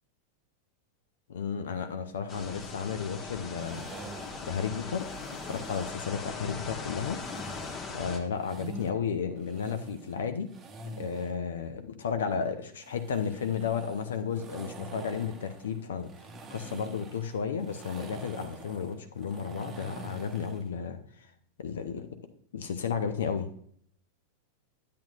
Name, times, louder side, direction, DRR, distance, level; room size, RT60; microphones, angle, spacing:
voice 1, 1.3-3.9 4.4-5.2 5.4-7.2 7.9-10.5 11.0-16.1 16.5-21.3 21.6-22.1 22.5-23.5, left 6 dB, 60° left, 8 dB, 0.7 m, -33 dB
sound 1, 2.3-8.2, left 4 dB, 25° left, 1.1 m, -40 dB
sound 2, 3.6-6.0 7.1-8.9 9.4-11.4 12.8-20.7, right 2 dB, 25° right, 0.9 m, -46 dB
10.5 x 8.4 x 2.4 m, 0.62 s
figure-of-eight pair, 90°, 0 cm